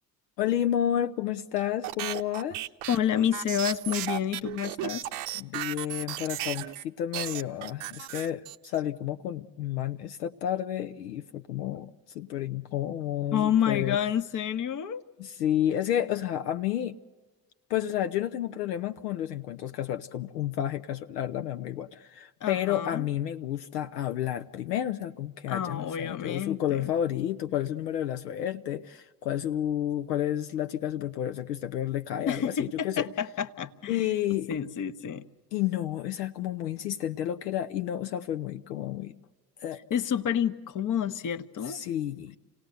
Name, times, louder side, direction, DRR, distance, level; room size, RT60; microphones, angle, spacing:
voice 1, 0.4-2.6 5.4-14.0 15.2-17.0 17.7-33.1 33.9-34.5 35.5-39.1 39.6-39.8 41.7-42.4, left 11 dB, 75° left, 8 dB, 0.7 m, -31 dB
sound 1, 1.8-6.8 7.1-8.8, right 14 dB, 60° right, 0.8 m, -35 dB
voice 2, 2.9-5.1 13.3-15.0 22.4-23.1 25.5-26.9 32.2-34.1 34.5-35.2 39.9-41.8, left 9 dB, 40° left, 10 dB, 1.1 m, -29 dB
27.5 x 18.0 x 8.0 m, 1.3 s
figure-of-eight pair, 55°, 48 cm